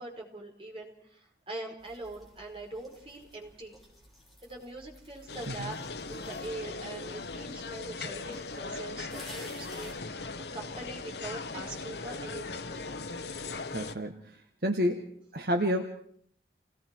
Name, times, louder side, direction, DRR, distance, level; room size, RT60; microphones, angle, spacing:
voice 1, 0.0-3.8 4.4-5.8 6.1-12.7, right 2 dB, 30° right, 0 dB, 5.3 m, -43 dB
sound 1, 1.8-8.6 9.1-9.9, equal, ahead, 6.4 m, -53 dB
sound 2, 5.3-13.9, left 3 dB, 70° left, 1.2 m, -39 dB
voice 2, 13.7-14.2 14.6-15.8, equal, 60° right, 3 dB, 1.6 m, -29 dB
29.5 x 19.0 x 4.7 m, 0.63 s
head